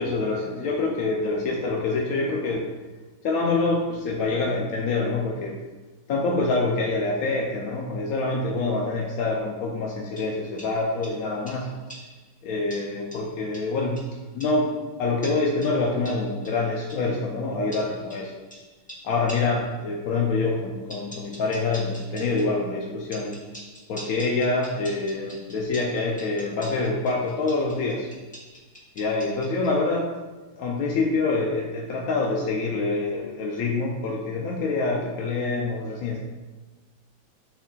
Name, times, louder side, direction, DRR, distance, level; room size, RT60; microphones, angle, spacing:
voice 1, 0.0-2.7 3.2-5.6 6.1-11.7 12.4-14.0 14.3-14.7 15.0-18.3 19.0-23.3 23.9-28.1 29.0-30.1 30.5-36.2, left 3 dB, 65° left, -1 dB, 0.9 m, -26 dB
sound 1, 10.2-12.3 12.7-14.7 15.2-17.1 17.7-19.7 20.9-22.6 23.1-29.8, equal, 5° left, 0.8 m, -45 dB
10.0 x 4.0 x 2.3 m, 1.3 s
omnidirectional pair, 2.0 m